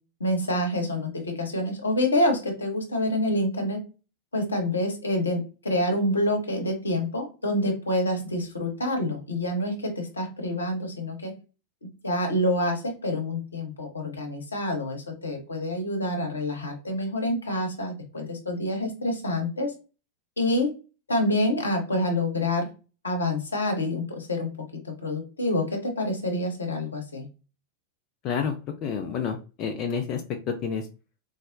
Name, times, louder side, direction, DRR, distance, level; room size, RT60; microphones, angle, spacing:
voice 1, 0.2-3.8 4.3-11.3 11.8-19.7 20.4-20.7 21.1-22.7 23.0-24.5 24.8-27.3, left 1 dB, 75° left, 2 dB, 0.8 m, -27 dB
voice 2, 28.2-28.6 28.8-30.2 30.5-30.8, left 6 dB, 35° left, 4 dB, 0.4 m, -29 dB
4.0 x 2.0 x 2.5 m, 0.32 s
figure-of-eight pair, 90°, 0 cm